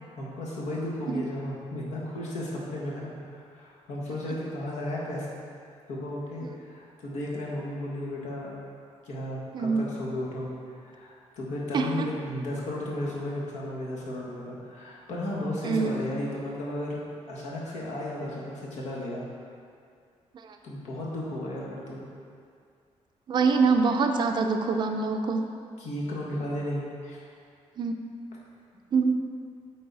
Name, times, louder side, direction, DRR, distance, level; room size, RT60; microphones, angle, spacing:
voice 1, 0.2-5.5 5.9-8.5 9.0-17.0 17.3-19.3 20.6-22.1 25.8-27.2, left 1 dB, 80° left, -4 dB, 1.5 m, -34 dB
voice 2, 11.7-12.1 15.6-16.0 20.4-20.6 23.3-25.4 27.8-27.9 28.9-29.1, right 4 dB, 40° right, 4 dB, 0.4 m, -24 dB
8.5 x 4.0 x 4.0 m, 2.3 s
cardioid pair, 180°, 12 cm